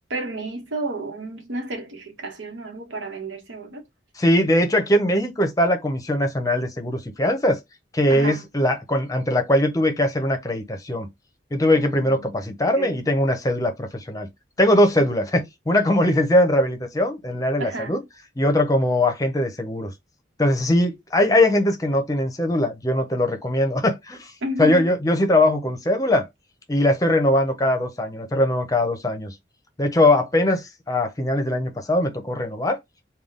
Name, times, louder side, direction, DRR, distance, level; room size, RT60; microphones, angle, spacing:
voice 1, 0.1-3.8 8.1-8.4 11.7-12.3 12.8-13.0 17.6-18.0 24.4-24.9, right 1 dB, 85° right, 1.1 m, -31 dB
voice 2, 4.2-7.6 7.9-11.1 11.5-14.3 14.6-18.0 18.4-19.9 20.4-24.3 24.6-26.3 26.7-29.3 29.8-32.8, left 1 dB, 20° left, 0.6 m, -21 dB
3.5 x 2.3 x 3.7 m
head